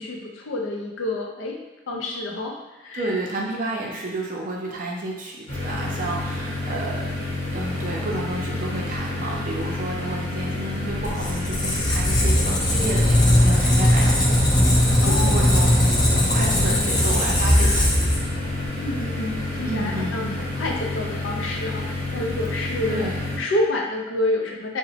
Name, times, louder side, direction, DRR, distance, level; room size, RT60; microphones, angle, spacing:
voice 1, 0.0-1.6 1.9-3.2 15.0-15.5 18.8-23.0 23.4-24.8, left 2 dB, 80° left, 0 dB, 0.5 m, -28 dB
voice 2, 2.9-7.1 7.5-14.4 15.0-16.0 16.3-18.1 19.6-20.4 22.9-23.2, right 2 dB, 45° right, -1 dB, 0.5 m, -31 dB
sound 1, 5.5-23.4, left 2 dB, 45° left, 1.0 m, -29 dB
Squeak, 10.9-18.7, left 1 dB, 20° left, 0.4 m, -19 dB
2.9 x 2.1 x 2.8 m, 1.2 s
head